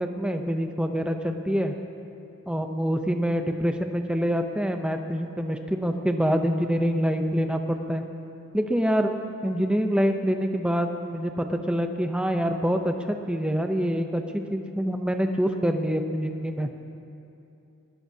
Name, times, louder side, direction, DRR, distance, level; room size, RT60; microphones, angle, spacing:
voice 1, 0.0-1.7 2.5-8.0 8.5-9.2 9.4-16.7, equal, 5° right, 5 dB, 0.6 m, -26 dB
20.0 x 18.0 x 2.8 m, 2.8 s
head